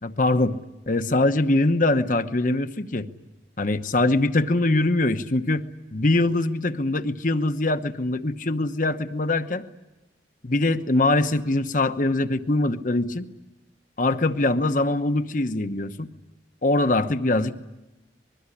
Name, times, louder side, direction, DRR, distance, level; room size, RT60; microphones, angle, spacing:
voice 1, 0.0-0.5 0.9-3.1 3.6-5.7 5.9-9.6 10.4-13.3 14.0-16.1 16.6-17.6, left 2 dB, 45° left, 10 dB, 1.0 m, -23 dB
25.0 x 21.5 x 10.0 m, 1.0 s
head